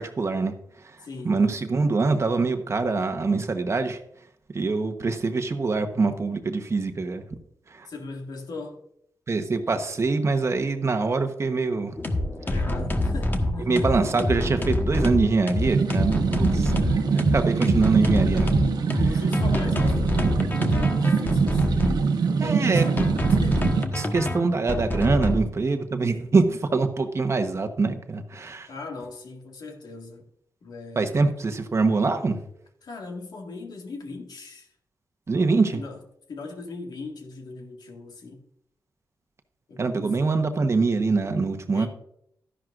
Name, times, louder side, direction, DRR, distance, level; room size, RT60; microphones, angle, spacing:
voice 1, 0.0-4.0 4.5-7.2 7.7-7.9 9.3-12.0 13.6-16.7 17.1-18.5 18.9-19.1 20.6-20.7 22.4-23.1 23.9-28.7 30.9-32.4 35.3-35.8 39.8-41.9, right 3 dB, 40° right, 1.1 m, -24 dB
voice 2, 1.0-1.4 7.9-8.8 12.4-13.9 16.7-17.1 18.6-23.8 28.7-30.3 30.6-31.3 32.8-34.7 35.7-36.0 36.3-38.5 39.7-40.5 41.7-41.9, left 3 dB, 70° left, 1.9 m, -39 dB
sound 1, 12.0-22.0 22.8-25.4, left 1 dB, 30° left, 1.3 m, -26 dB
sound 2, 15.5-23.8, right 5 dB, 75° right, 1.1 m, -24 dB
12.5 x 10.5 x 2.6 m
cardioid pair, 95°, 7 cm